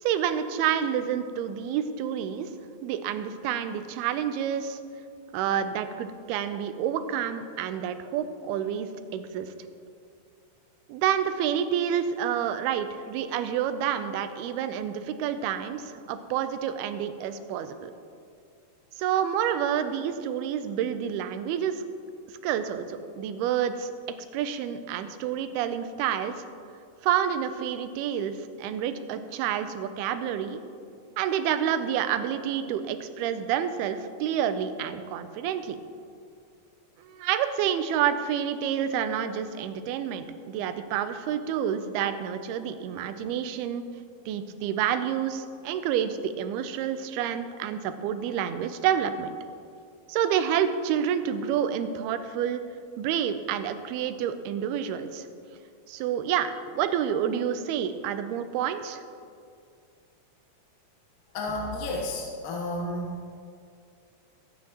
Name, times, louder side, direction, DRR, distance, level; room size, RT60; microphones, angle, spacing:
voice 1, 0.0-2.5 2.8-4.8 5.3-9.5 10.9-17.9 19.0-21.8 22.4-23.9 24.3-26.5 27.0-30.6 31.2-35.8 37.0-43.8 44.3-49.3 50.1-52.6 53.0-55.3 55.9-59.0, right 9 dB, 85° right, 10 dB, 2.6 m, -28 dB
voice 2, 61.3-63.1, left 1 dB, 70° left, -2 dB, 2.5 m, -31 dB
22.0 x 8.5 x 3.0 m, 2.3 s
omnidirectional pair, 4.4 m